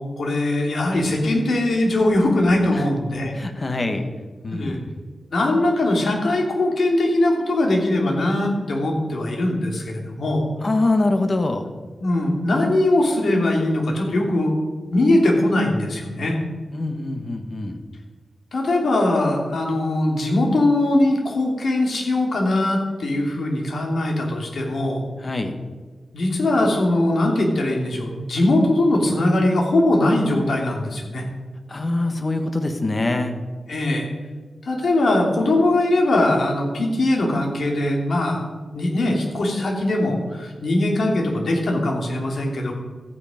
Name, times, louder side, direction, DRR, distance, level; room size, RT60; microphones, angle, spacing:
voice 1, 0.0-3.3 4.5-4.8 5.3-10.4 12.0-14.6 14.9-16.3 18.5-25.0 26.1-31.2 33.7-34.1 34.7-38.5 38.7-42.7, left 1 dB, 65° left, 0 dB, 2.7 m, -21 dB
voice 2, 3.3-4.1 4.4-4.9 10.6-11.7 16.7-17.8 25.2-25.5 31.7-33.3, left 2 dB, 35° left, 6 dB, 1.3 m, -24 dB
14.0 x 9.2 x 5.1 m, 1.4 s
wide cardioid pair, 135°, 0 cm